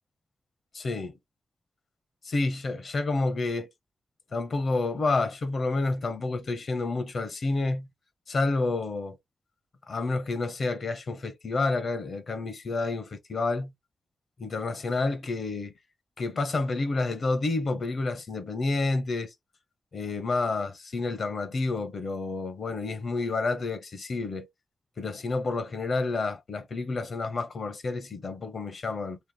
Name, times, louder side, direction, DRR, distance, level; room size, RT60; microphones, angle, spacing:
voice 1, 0.7-1.1 2.3-3.7 4.3-7.9 8.3-9.2 9.9-13.7 14.4-15.7 16.2-19.3 19.9-24.5 25.0-29.2, left 3 dB, 60° left, 1.1 m, -29 dB
3.4 x 2.6 x 4.1 m
wide cardioid pair, 140°, 0 cm